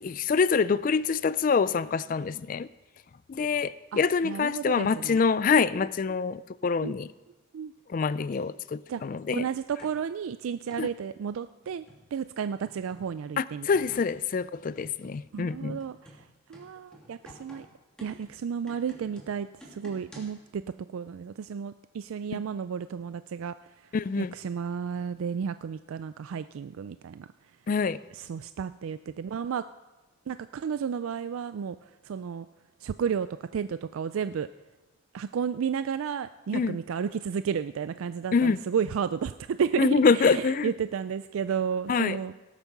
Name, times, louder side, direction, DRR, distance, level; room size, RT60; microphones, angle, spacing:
voice 1, 0.0-2.7 3.3-7.1 7.9-9.5 10.8-10.9 13.4-15.8 22.3-22.4 23.9-24.3 27.7-28.0 36.5-36.8 38.3-38.6 39.8-40.7 41.9-42.2, left 5 dB, 40° left, 17 dB, 0.3 m, -25 dB
voice 2, 4.2-5.2 6.8-6.9 7.5-7.7 8.9-9.0 9.3-11.8 12.1-13.7 15.3-16.0 16.5-17.7 18.0-20.6 20.9-23.6 24.2-27.3 28.2-29.6 30.3-31.8 32.0-32.5 32.8-33.3 33.5-34.5 35.1-42.3, right 7 dB, 85° right, 13 dB, 0.4 m, -32 dB
sound 1, 8.3-8.4 9.8-10.0 10.7-10.9 11.6-12.1 12.6-13.1 13.7-14.2 14.7-15.3 15.8-20.4, equal, 5° left, 2.8 m, -51 dB
18.0 x 8.3 x 5.9 m, 1.1 s
head